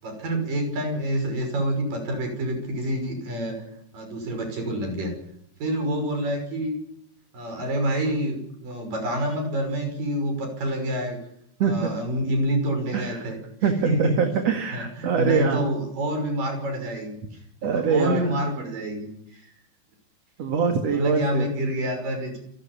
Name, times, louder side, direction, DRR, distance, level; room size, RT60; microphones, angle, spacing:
voice 1, 0.0-3.6 3.9-5.1 5.6-6.7 7.3-11.2 11.6-13.4 13.9-14.2 14.7-17.2 17.6-19.5 20.9-22.4, right 1 dB, 70° right, 5 dB, 7.4 m, -27 dB
voice 2, 11.6-11.9 12.9-13.3 13.6-15.6 17.6-18.5 20.4-21.5, right 6 dB, 55° right, 5 dB, 2.6 m, -24 dB
27.5 x 13.0 x 9.0 m, 0.73 s
omnidirectional pair, 4.0 m